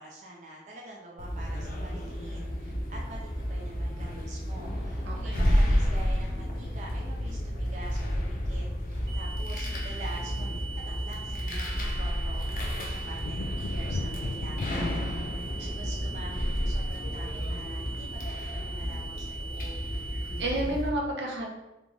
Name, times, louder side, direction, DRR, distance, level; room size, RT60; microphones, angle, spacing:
voice 1, 0.0-15.3 15.6-19.8, right 2 dB, 40° right, -3 dB, 0.6 m, -46 dB
sound 1, 1.2-20.9, equal, 50° left, 0.8 m, -31 dB
sound 2, 5.0-6.6 7.9-8.0 8.2-8.4 8.7-20.8, left 3 dB, 80° left, 0.3 m, -44 dB
voice 2, 5.0-5.4 15.3-16.0 20.1-21.5, right 1 dB, 80° right, -1 dB, 1.0 m, -33 dB
sound 3, 9.1-20.5, right 5 dB, 20° right, 1.0 m, -42 dB
3.8 x 3.5 x 3.4 m, 0.96 s
head